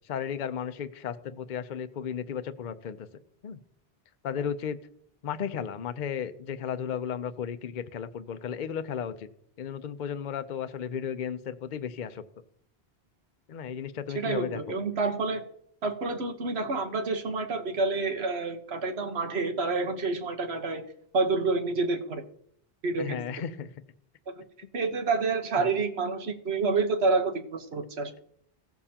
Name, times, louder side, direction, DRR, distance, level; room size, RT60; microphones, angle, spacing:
voice 1, 0.1-3.1 3.4-3.6 4.2-4.8 5.2-9.3 9.6-12.2 13.5-14.6 22.9-23.7 25.6-25.7, left 8 dB, 55° left, 10 dB, 0.7 m, -34 dB
voice 2, 14.1-15.4 15.8-20.8 21.1-22.2 22.8-23.2 24.3-24.4 24.7-28.1, right 3 dB, 80° right, 5 dB, 1.4 m, -28 dB
16.5 x 7.0 x 2.9 m, 0.67 s
omnidirectional pair, 1.1 m